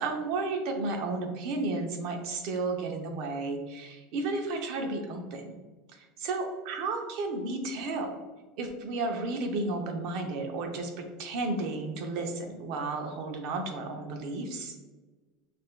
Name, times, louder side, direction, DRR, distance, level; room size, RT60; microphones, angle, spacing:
voice 1, 0.0-5.6 5.9-8.2 8.6-14.7, right 3 dB, 55° right, 3 dB, 0.7 m, -33 dB
6.4 x 2.5 x 2.2 m, 1.3 s
supercardioid pair, 155°, 0 cm